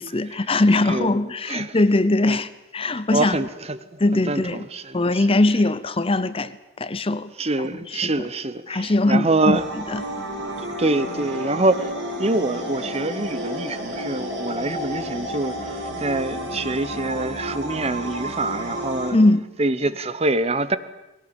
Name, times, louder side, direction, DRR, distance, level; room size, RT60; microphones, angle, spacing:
voice 1, 0.0-3.4 4.0-4.7 4.9-7.3 8.0-8.1 8.7-9.6 9.9-10.0 19.1-19.4, left 2 dB, 30° left, 0.8 m, -21 dB
voice 2, 0.9-1.2 1.5-1.8 2.2-2.4 3.1-5.4 7.4-9.6 10.6-11.9 12.2-19.2 19.6-20.8, right 2 dB, 35° right, 1.0 m, -25 dB
sound 1, 9.5-19.1, equal, 65° right, 6.5 m, -31 dB
20.5 x 18.5 x 9.0 m
head